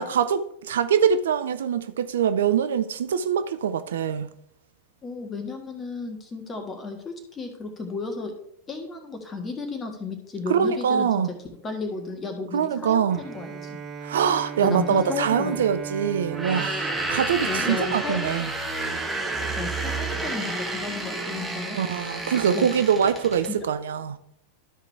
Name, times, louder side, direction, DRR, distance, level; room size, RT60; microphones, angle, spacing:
voice 1, 0.0-4.3 10.5-11.3 12.5-13.2 14.0-18.5 21.7-24.2, right 8 dB, 60° right, 0.4 m, -24 dB
voice 2, 5.0-8.3 8.7-11.1 11.6-13.8 14.6-15.6 17.4-18.2 19.6-21.8 22.5-22.7 23.5-23.6, left 4 dB, 20° left, 1.6 m, -33 dB
Bowed string instrument, 13.1-18.5, right 6 dB, 30° right, 0.9 m, -38 dB
sound 1, 16.3-23.5, right 2 dB, 5° right, 1.5 m, -30 dB
12.5 x 4.9 x 3.4 m
figure-of-eight pair, 90°, 0 cm